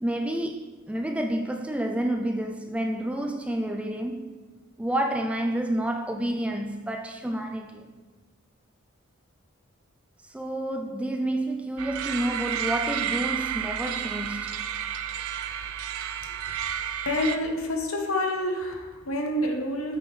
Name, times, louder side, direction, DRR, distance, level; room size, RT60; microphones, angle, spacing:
voice 1, 0.0-4.3 4.8-7.9 10.2-14.7, right 1 dB, 5° right, 0.3 m, -29 dB
sound 1, 11.8-17.4, right 10 dB, 85° right, 0.4 m, -31 dB
voice 2, 17.1-20.0, left 1 dB, 80° left, 1.0 m, -28 dB
8.3 x 5.2 x 3.2 m
head